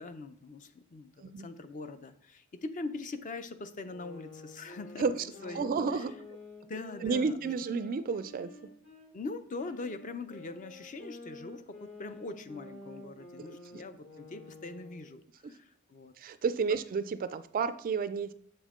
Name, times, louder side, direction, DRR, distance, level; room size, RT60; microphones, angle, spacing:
voice 1, 0.0-5.0 5.4-6.1 6.7-7.5 9.1-16.1 16.7-16.8, left 3 dB, 35° left, 10 dB, 0.5 m, -42 dB
sound 1, 3.8-9.1 9.6-15.2, left 2 dB, 60° left, 2.9 m, -50 dB
voice 2, 5.5-6.1 7.0-8.5 13.7-13.8 16.2-18.3, right 5 dB, 40° right, 13 dB, 0.3 m, -31 dB
6.8 x 5.4 x 3.6 m, 0.64 s
head